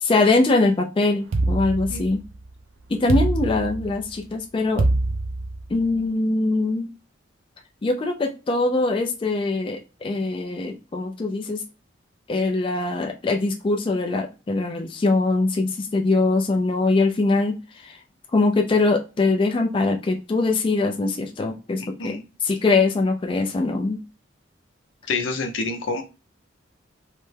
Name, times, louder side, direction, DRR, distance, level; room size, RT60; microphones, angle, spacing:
voice 1, 0.0-2.2 2.9-4.9 5.7-6.9 7.8-11.6 12.3-18.0 18.3-24.0, left 3 dB, 25° left, 3 dB, 0.3 m, -22 dB
sound 1, 1.3-2.4 3.1-4.1 4.8-5.9, right 2 dB, 85° right, 0.5 m, -24 dB
voice 2, 21.8-22.2 25.1-26.0, left 3 dB, 80° left, 4 dB, 0.6 m, -28 dB
3.2 x 2.1 x 3.2 m, 0.30 s
head